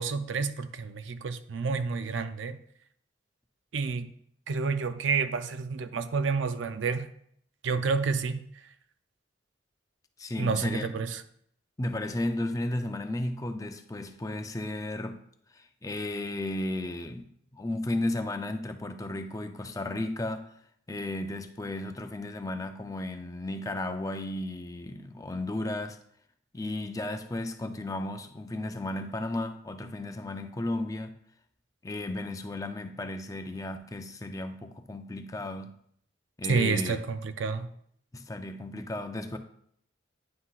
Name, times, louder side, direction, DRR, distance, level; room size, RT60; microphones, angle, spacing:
voice 1, 0.0-2.6 3.7-4.1 4.5-7.1 7.6-8.4 10.4-11.2 36.5-37.7, right 5 dB, 75° right, 10 dB, 0.5 m, -29 dB
voice 2, 10.2-10.9 11.8-15.2 15.5-17.3 17.5-20.4 20.9-26.0 26.5-31.1 31.8-35.8 36.4-37.0 38.1-39.4, left 1 dB, 20° left, 6 dB, 0.5 m, -34 dB
9.6 x 5.7 x 2.4 m, 0.67 s
head